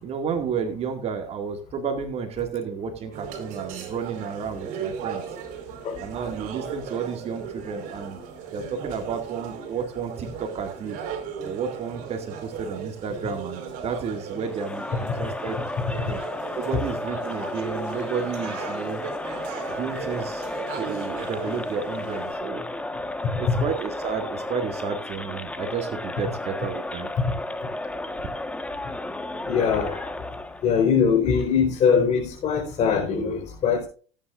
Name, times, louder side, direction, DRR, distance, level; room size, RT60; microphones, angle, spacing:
voice 1, 0.0-5.4 6.0-8.2 8.5-11.0 11.4-15.6 16.1-16.2 16.5-19.0 19.8-20.4 20.7-22.7 23.4-27.1, right 6 dB, 45° right, 5 dB, 2.2 m, -31 dB
sound 1, 3.1-22.3, right 7 dB, 60° right, 4.6 m, -37 dB
Crowd, 14.4-30.7, left 2 dB, 10° left, 1.4 m, -33 dB
voice 2, 29.5-30.1 30.6-33.9, left 6 dB, 45° left, -1 dB, 4.4 m, -22 dB
19.0 x 9.8 x 2.6 m, 0.39 s
supercardioid pair, 95°, 15 cm